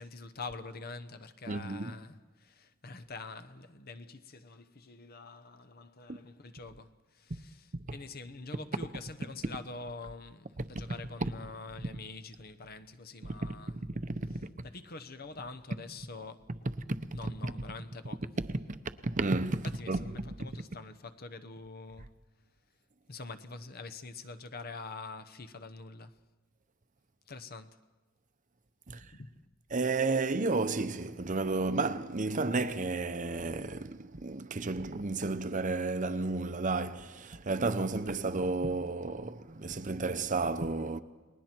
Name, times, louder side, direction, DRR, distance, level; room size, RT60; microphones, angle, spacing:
voice 1, 0.0-7.6 7.9-13.7 14.7-16.4 17.1-18.3 19.8-22.1 23.1-26.1 27.3-27.8 29.0-29.3, left 3 dB, 45° left, 1.0 m, -45 dB
voice 2, 1.5-1.9 6.1-6.2 7.3-7.4 7.7-8.0 10.6-11.0 11.2-11.3 13.2-14.7 16.9-17.5 18.5-20.3 28.9-29.1 29.7-41.0, right 3 dB, 40° right, 0.8 m, -32 dB
30.0 x 20.5 x 4.5 m
head